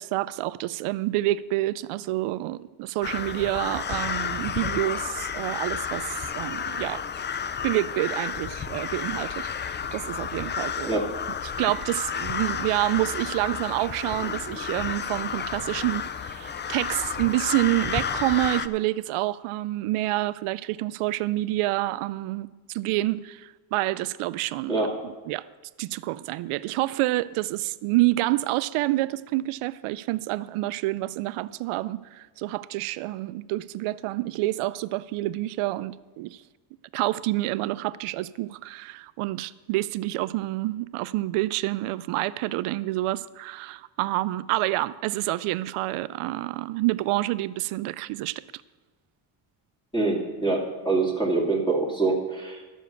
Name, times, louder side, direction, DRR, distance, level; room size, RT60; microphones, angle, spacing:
voice 1, 0.0-7.0 7.6-10.9 11.4-25.5 25.8-36.4 36.9-48.4, right 17 dB, 90° right, 0.6 m, -28 dB
sound 1, 3.0-18.7, left 7 dB, 25° left, 0.3 m, -31 dB
voice 2, 49.9-52.6, right 3 dB, 10° left, 2.6 m, -25 dB
12.0 x 7.3 x 6.8 m
cardioid pair, 125°, 49 cm